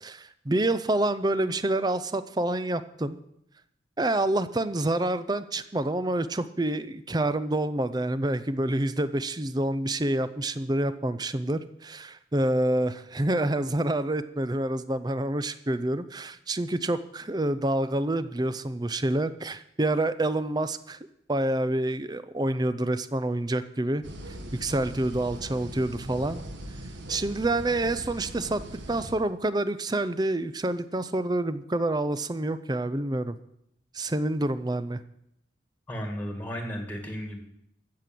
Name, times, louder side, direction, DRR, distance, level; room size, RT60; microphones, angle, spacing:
voice 1, 0.0-3.2 4.0-21.0 21.3-24.0 24.5-26.4 27.1-28.6 28.9-33.4 33.9-35.0, right 1 dB, 20° right, 13 dB, 0.5 m, -27 dB
sound 1, 24.0-29.1, right 1 dB, 70° right, 1.7 m, -40 dB
voice 2, 35.9-37.4, equal, 10° left, 3 dB, 2.1 m, -34 dB
14.0 x 6.8 x 7.6 m, 0.78 s
head